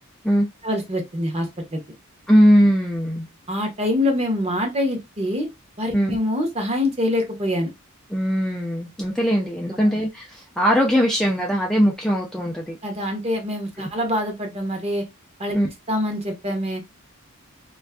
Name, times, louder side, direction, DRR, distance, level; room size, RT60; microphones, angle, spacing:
voice 1, 0.6-1.8 3.5-5.5 5.8-7.7 9.7-9.8 12.8-15.0 15.4-15.6 15.9-16.8, left 1 dB, 30° right, 0.8 m, -25 dB
voice 2, 2.3-3.3 5.9-6.2 8.1-12.8 13.8-13.9 15.5-15.7, equal, ahead, 0.4 m, -20 dB
2.5 x 2.4 x 2.2 m
head